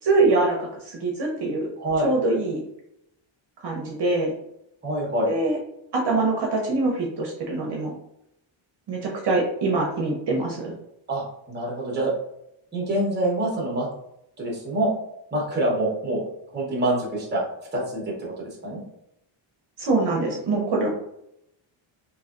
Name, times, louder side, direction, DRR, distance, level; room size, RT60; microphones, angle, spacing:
voice 1, 0.0-1.7 2.0-2.6 3.6-4.3 5.3-5.6 5.9-7.9 8.9-10.7 19.8-20.9, right 3 dB, 55° right, -1 dB, 0.7 m, -24 dB
voice 2, 1.8-2.1 4.8-5.3 11.1-12.1 12.7-13.9 14.4-14.9 15.3-16.2 16.5-17.5 17.7-18.8, right 1 dB, 20° right, -2 dB, 0.9 m, -26 dB
3.1 x 2.7 x 2.5 m, 0.78 s
wide cardioid pair, 170°, 49 cm